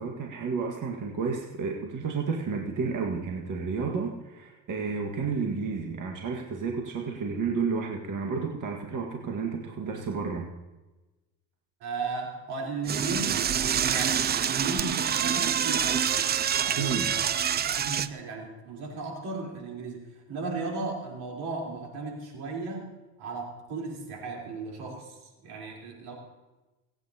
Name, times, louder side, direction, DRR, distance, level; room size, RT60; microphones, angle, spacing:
voice 1, 0.0-10.5 16.7-17.2, right 5 dB, 40° right, 1 dB, 1.8 m, -31 dB
voice 2, 11.8-16.2 16.5-17.2 17.8-22.9 23.2-26.1, right 3 dB, 70° right, -1 dB, 4.0 m, -36 dB
Door / Toilet flush, 12.9-18.1, right 8 dB, 25° right, 0.3 m, -26 dB
25.0 x 9.1 x 2.9 m, 1.1 s
supercardioid pair, 85°, 48 cm